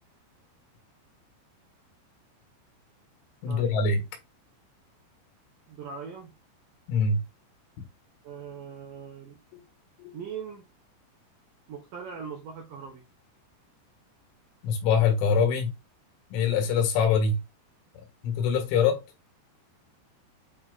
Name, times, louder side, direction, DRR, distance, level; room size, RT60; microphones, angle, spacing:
voice 1, 3.4-4.1 6.9-7.2 9.5-9.6 10.0-10.2 14.6-15.7 16.3-17.4 18.2-19.0, left 5 dB, 85° left, 4.0 m, -24 dB
voice 2, 5.7-6.3 8.2-9.4 10.1-10.6 11.7-13.0, right 6 dB, 75° right, 2.1 m, -40 dB
8.6 x 3.0 x 3.8 m
omnidirectional pair, 5.4 m